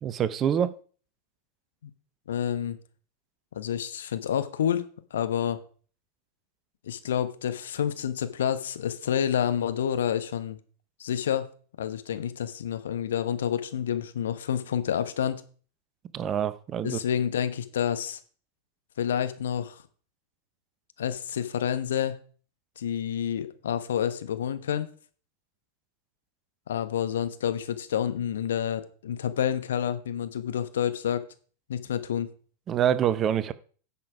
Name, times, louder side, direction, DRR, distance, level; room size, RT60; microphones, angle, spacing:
voice 1, 0.0-0.7 16.1-17.0 32.7-33.5, right 9 dB, 30° right, 15 dB, 0.7 m, -26 dB
voice 2, 2.3-2.8 3.5-5.6 6.8-10.6 11.0-11.5 11.8-15.4 16.8-18.2 19.0-19.8 21.0-22.2 22.8-24.9 26.7-31.2 31.7-32.3, left 9 dB, 60° left, 11 dB, 1.1 m, -29 dB
10.5 x 7.1 x 4.9 m, 0.42 s
figure-of-eight pair, 90°, 0 cm